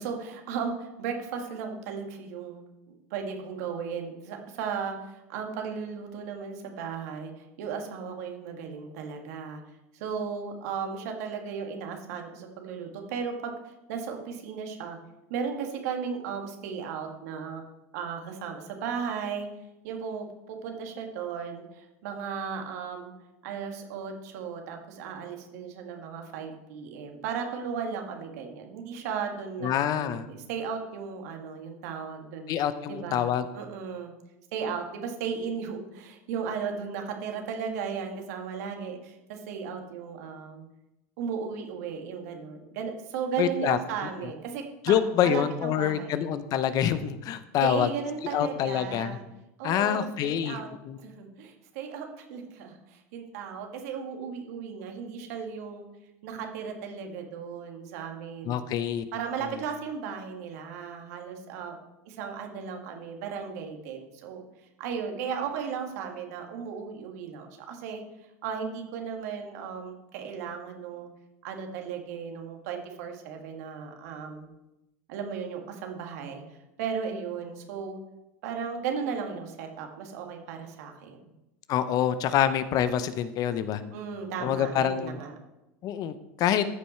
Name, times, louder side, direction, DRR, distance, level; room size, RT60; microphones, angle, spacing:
voice 1, 0.0-9.6 9.9-15.0 15.3-17.6 17.9-19.5 19.8-23.1 23.4-29.7 30.0-32.5 32.9-33.3 33.5-34.1 34.5-40.6 41.2-46.2 47.6-49.2 49.6-50.7 51.0-55.9 56.2-58.6 59.1-61.8 62.1-64.4 64.8-68.0 68.4-71.1 71.4-74.5 75.1-76.4 76.8-78.0 78.4-81.2 83.9-85.3, right 6 dB, 75° right, 3 dB, 2.1 m, -35 dB
voice 2, 29.6-30.3 32.5-33.4 43.4-43.8 44.8-47.9 48.3-49.2 49.6-51.0 58.4-59.0 59.4-59.5 81.7-83.8 84.4-85.2 85.8-86.6, left 10 dB, 45° left, 13 dB, 0.7 m, -26 dB
14.0 x 5.5 x 4.4 m, 0.94 s
supercardioid pair, 115°, 9 cm